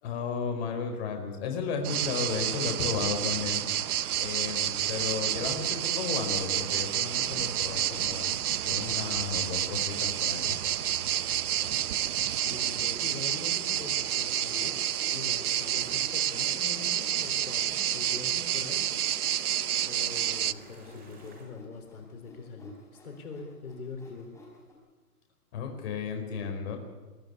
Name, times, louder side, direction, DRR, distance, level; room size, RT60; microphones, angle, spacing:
voice 1, 0.0-3.6 4.2-8.3 8.6-10.6 25.5-26.8, left 5 dB, 40° left, 4 dB, 4.8 m, -34 dB
sound 1, 1.8-20.5, right 11 dB, 65° right, 0.8 m, -29 dB
sound 2, 6.3-21.4, right 3 dB, 20° right, 4.5 m, -53 dB
Sawing, 6.4-9.2 9.8-9.9 10.4-24.7, left 2 dB, 5° left, 5.0 m, -55 dB
voice 2, 12.2-14.8 15.1-18.8 19.8-24.3, left 4 dB, 60° left, 4 dB, 4.0 m, -43 dB
22.5 x 15.0 x 9.6 m, 1.2 s
hypercardioid pair, 145°, 47 cm